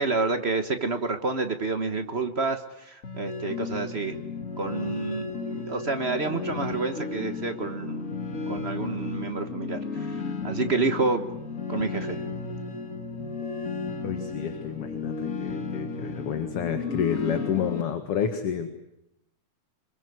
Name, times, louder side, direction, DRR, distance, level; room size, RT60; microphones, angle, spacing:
voice 1, 0.0-4.2 4.6-8.1 8.5-11.2 11.7-12.2, right 3 dB, 60° right, 8 dB, 0.6 m, -29 dB
sound 1, 3.0-17.8, left 4 dB, 30° left, 2.1 m, -34 dB
voice 2, 14.0-18.7, left 8 dB, 55° left, 8 dB, 2.5 m, -30 dB
26.0 x 23.5 x 9.6 m, 0.82 s
omnidirectional pair, 3.5 m